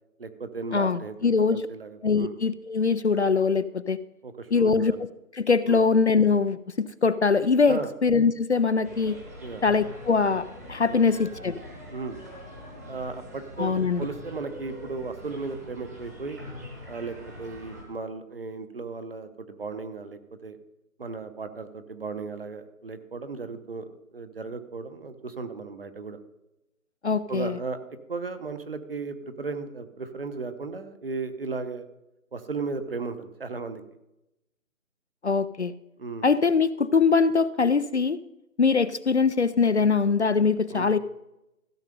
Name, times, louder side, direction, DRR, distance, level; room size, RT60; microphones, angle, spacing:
voice 1, 0.2-2.3 4.2-5.0 5.7-5.8 7.7-7.9 9.4-9.6 10.9-11.1 11.9-12.2 12.9-16.4 16.9-20.6 21.0-23.9 24.1-26.2 27.3-27.8 28.1-31.9 32.3-33.8 36.0-36.3 40.7-41.0, right 4 dB, 40° right, 10 dB, 1.0 m, -35 dB
voice 2, 0.7-1.6 2.0-4.0 4.5-5.1 5.3-9.2 9.6-11.6 13.6-14.0 27.0-27.6 35.2-35.7 36.2-38.2 38.6-41.0, left 5 dB, 55° left, 15 dB, 0.5 m, -22 dB
sound 1, 8.8-17.8, equal, 10° right, 1.0 m, -43 dB
15.0 x 6.5 x 5.2 m, 0.90 s
figure-of-eight pair, 160°, 43 cm